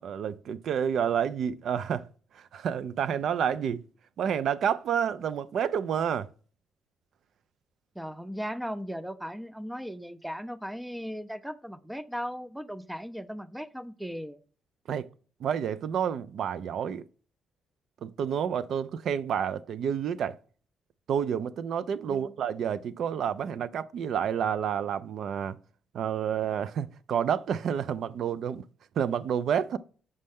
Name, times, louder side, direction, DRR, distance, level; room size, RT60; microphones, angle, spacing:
voice 1, 0.0-2.1 2.3-3.8 4.2-6.3 14.9-15.1 15.4-17.0 18.0-20.4 21.1-25.6 25.9-28.6 29.0-29.8, right 8 dB, 70° right, 0.3 m, -29 dB
voice 2, 8.0-14.4 22.1-22.3, equal, 5° right, 0.4 m, -37 dB
6.5 x 4.2 x 3.5 m
cardioid pair, 90°, 0 cm